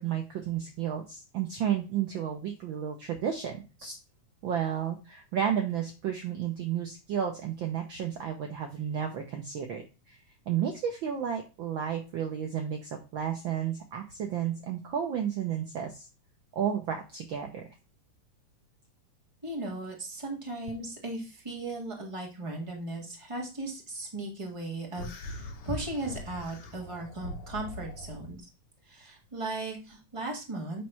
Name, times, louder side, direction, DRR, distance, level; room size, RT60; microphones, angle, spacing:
voice 1, 0.0-4.0 4.4-10.2 10.5-16.1 16.5-17.6, right 9 dB, 75° right, 4 dB, 1.1 m, -32 dB
voice 2, 19.4-28.5 28.9-30.8, right 2 dB, 15° right, 0 dB, 1.4 m, -37 dB
sound 1, 24.9-28.4, left 2 dB, 75° left, 2.7 m, -42 dB
9.1 x 3.2 x 5.7 m, 0.31 s
omnidirectional pair, 3.4 m